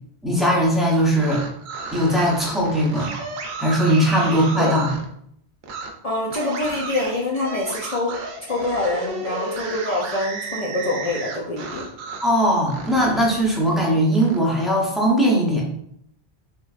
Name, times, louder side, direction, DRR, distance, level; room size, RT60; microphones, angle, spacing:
voice 1, 0.2-1.4 1.9-3.1 3.6-4.9 12.2-15.6, equal, ahead, -4 dB, 0.6 m, -19 dB
sound 1, 1.1-5.1 5.6-5.9 6.3-12.4 12.7-14.4, right 3 dB, 75° right, 0.8 m, -33 dB
voice 2, 6.0-11.9, left 2 dB, 55° left, -2 dB, 0.4 m, -25 dB
3.3 x 3.1 x 2.4 m, 0.70 s
omnidirectional pair, 1.1 m